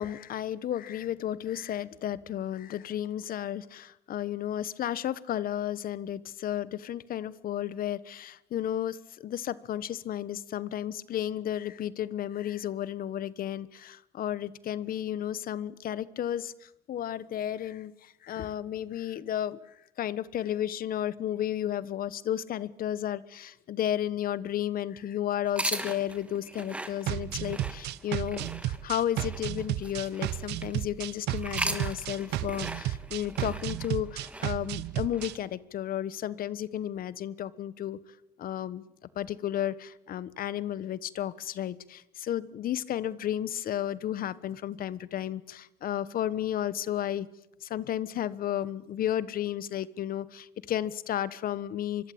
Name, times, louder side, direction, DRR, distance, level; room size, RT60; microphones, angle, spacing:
voice 1, 0.0-9.0 9.2-19.6 20.0-38.0 38.4-38.8 39.1-47.3 47.6-52.1, left 11 dB, 60° left, 17 dB, 1.3 m, -33 dB
sound 1, 25.4-30.8 31.3-35.3, right 1 dB, 5° right, 2.7 m, -39 dB
sound 2, 27.1-35.3, right 14 dB, 80° right, 1.0 m, -33 dB
25.0 x 23.0 x 8.8 m, 0.88 s
cardioid pair, 110°, 17 cm